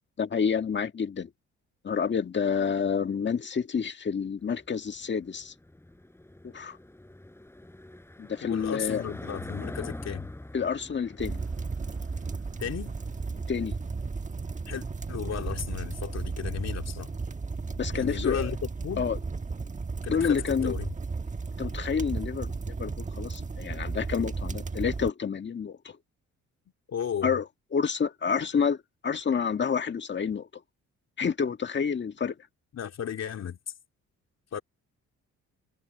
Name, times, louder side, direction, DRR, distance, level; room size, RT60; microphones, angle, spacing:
voice 1, 0.2-1.3 1.8-5.5 6.4-6.8 8.2-9.0 10.5-11.4 13.5-13.7 17.7-18.5 19.0-19.2 20.1-20.7 21.6-26.0 27.2-27.5 27.7-28.8 29.0-30.5 31.2-32.3, left 6 dB, 35° left, 1.8 m, -29 dB
Car passing by / Engine, 4.4-15.0, left 1 dB, 10° left, 6.0 m, -45 dB
voice 2, 8.4-10.3 12.6-12.9 14.7-17.1 17.9-18.6 18.8-19.1 20.0-20.9 26.9-27.3 32.7-33.6 34.5-34.6, left 8 dB, 60° left, 2.9 m, -34 dB
sound 1, 11.2-25.1, right 4 dB, 25° right, 1.4 m, -34 dB
cardioid pair, 90°, 30 cm